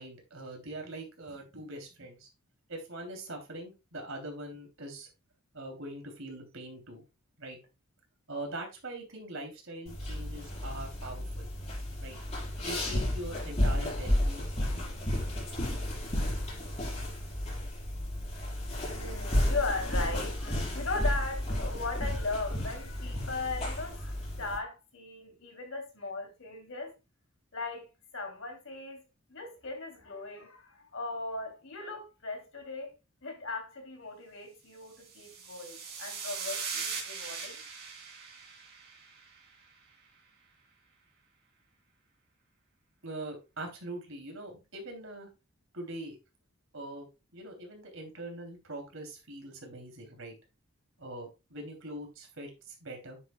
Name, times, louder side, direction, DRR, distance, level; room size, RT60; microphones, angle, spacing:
voice 1, 0.0-2.3 2.7-5.1 5.5-7.0 7.4-7.6 8.3-11.5 12.0-12.2 12.6-14.9 43.0-45.3 45.7-46.2 46.7-50.3 51.0-53.2, right 1 dB, 65° right, 3.1 m, -42 dB
sound 1, 9.9-24.6, left 1 dB, 30° left, 4.7 m, -32 dB
voice 2, 18.9-26.9 27.5-27.9 28.1-29.0 29.3-32.9 33.2-37.6, left 3 dB, 65° left, 3.0 m, -38 dB
sound 2, 35.0-39.5, right 5 dB, 45° right, 3.2 m, -40 dB
9.4 x 7.8 x 2.3 m
head